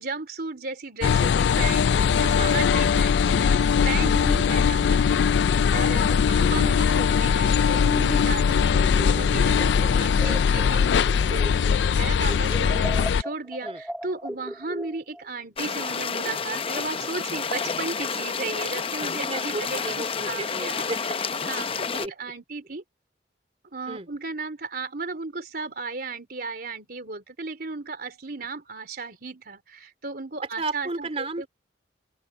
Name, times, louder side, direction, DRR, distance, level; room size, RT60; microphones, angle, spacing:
voice 1, 0.0-3.5 3.9-5.4 5.7-10.8 11.3-11.6 11.8-13.7 14.0-20.9 21.5-21.7 22.2-22.8 23.7-29.6 30.0-31.1 31.4-31.5, right 4 dB, 55° right, 3.5 m, -35 dB
sound 1, 1.0-13.2, left 6 dB, 70° left, 0.3 m, -21 dB
voice 2, 2.2-2.6 4.5-4.6 6.0-6.6 13.6-13.8 19.0-21.5 22.0-22.1 23.9-24.1 30.6-31.5, right 2 dB, 35° right, 3.1 m, -34 dB
sound 2, 8.7-11.9 12.2-15.3, equal, ahead, 0.9 m, -37 dB
sound 3, 15.6-22.1, left 5 dB, 30° left, 0.6 m, -30 dB
open air
head